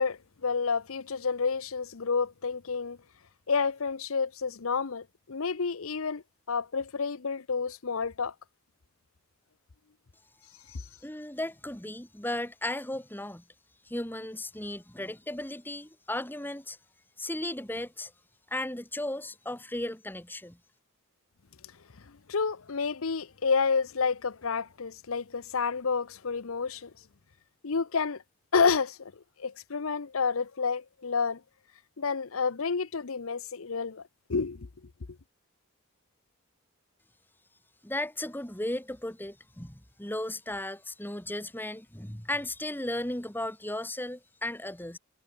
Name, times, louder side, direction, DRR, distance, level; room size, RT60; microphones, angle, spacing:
voice 1, 0.0-3.0 3.5-6.2 6.5-8.3 22.3-26.9 27.6-28.2 28.5-29.1 29.4-31.4 32.0-34.0 34.3-34.7, left 5 dB, 75° left, 0.8 m, -29 dB
voice 2, 11.0-13.4 13.9-16.8 17.2-18.1 18.5-20.6 37.8-45.0, left 1 dB, 10° left, 2.4 m, -35 dB
head